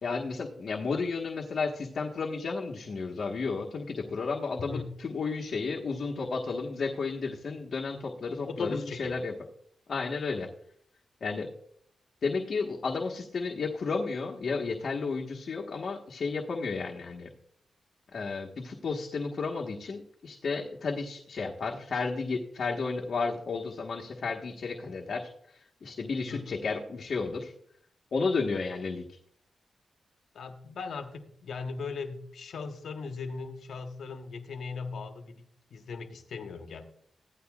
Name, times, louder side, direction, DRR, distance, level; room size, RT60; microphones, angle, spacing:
voice 1, 0.0-9.3 9.9-10.5 11.2-11.5 12.2-17.3 18.1-27.5 28.1-29.1, left 4 dB, 60° left, 0 dB, 1.3 m, -32 dB
voice 2, 4.6-4.9 8.5-9.2 26.3-26.6 30.3-36.8, left 4 dB, 80° left, 6 dB, 1.2 m, -38 dB
16.0 x 11.0 x 2.4 m, 0.65 s
wide cardioid pair, 100°, 0 cm